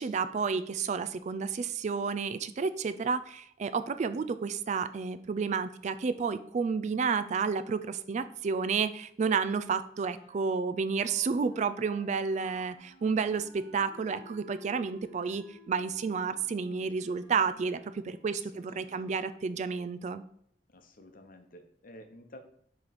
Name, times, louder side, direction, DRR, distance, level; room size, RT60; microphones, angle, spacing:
voice 1, 0.0-20.2, right 5 dB, 40° right, 13 dB, 0.3 m, -31 dB
Wind instrument woodwind instrument, 9.9-19.4, equal, 10° right, 2.7 m, -57 dB
voice 2, 18.3-19.1 20.7-22.4, left 1 dB, 55° left, 6 dB, 0.9 m, -52 dB
7.4 x 3.2 x 4.0 m, 0.66 s
head